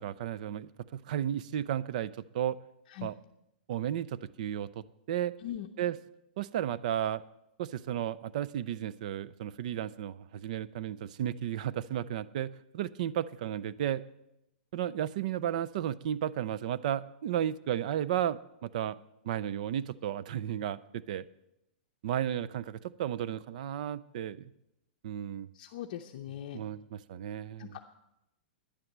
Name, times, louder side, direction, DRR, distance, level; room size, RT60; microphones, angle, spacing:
voice 1, 0.0-2.6 3.0-3.1 3.7-5.3 5.8-6.0 6.4-7.2 7.6-14.0 14.7-19.0 19.2-21.3 22.0-24.5 25.0-25.5 26.5-27.8, right 10 dB, 45° right, 18 dB, 0.4 m, -33 dB
voice 2, 25.5-26.6 27.6-27.8, left 11 dB, 45° left, 3 dB, 0.7 m, -40 dB
11.0 x 10.0 x 7.3 m, 0.85 s
supercardioid pair, 170°, 5 cm